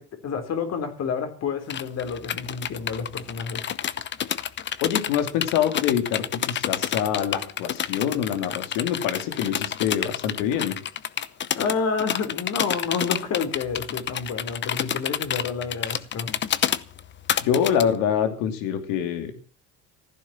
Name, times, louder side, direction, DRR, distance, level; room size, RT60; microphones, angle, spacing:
voice 1, 0.0-3.6 11.6-16.3, left 5 dB, 50° left, 8 dB, 3.9 m, -29 dB
sound 1, 1.7-17.8, left 9 dB, 35° left, 0.8 m, -29 dB
voice 2, 4.8-10.8 17.4-19.5, left 8 dB, 80° left, 8 dB, 2.9 m, -25 dB
15.5 x 10.5 x 7.3 m, 0.41 s
supercardioid pair, 105°, 33 cm